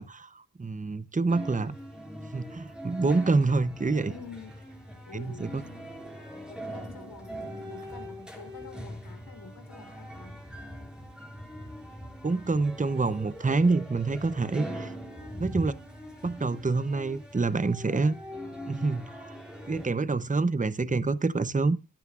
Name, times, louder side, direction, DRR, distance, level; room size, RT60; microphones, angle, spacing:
voice 1, 0.0-1.7 2.3-4.1 5.1-5.6 12.2-14.9 15.4-15.7 16.2-18.2 18.7-19.4 19.7-21.8, right 3 dB, 20° right, 0.8 m, -27 dB
sound 1, 1.3-19.9, equal, ahead, 5.3 m, -42 dB
voice 2, 4.1-5.5 6.5-10.4 15.2-15.6, left 5 dB, 85° left, 3.6 m, -48 dB
18.0 x 9.7 x 2.5 m
cardioid pair, 55°, 35 cm